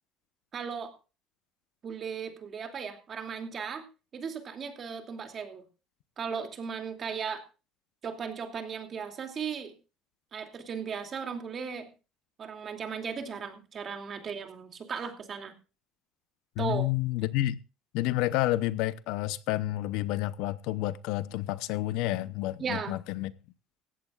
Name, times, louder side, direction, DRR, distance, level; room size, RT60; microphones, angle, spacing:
voice 1, 0.5-0.9 1.8-3.8 4.1-5.6 6.2-7.4 8.0-9.7 10.3-11.9 12.4-15.5 16.6-16.9 22.6-23.0, right 6 dB, 35° right, 2.6 m, -36 dB
voice 2, 16.6-17.6 17.9-23.3, left 16 dB, 80° left, 0.7 m, -30 dB
17.5 x 15.0 x 2.4 m
cardioid pair, 130°, 0 cm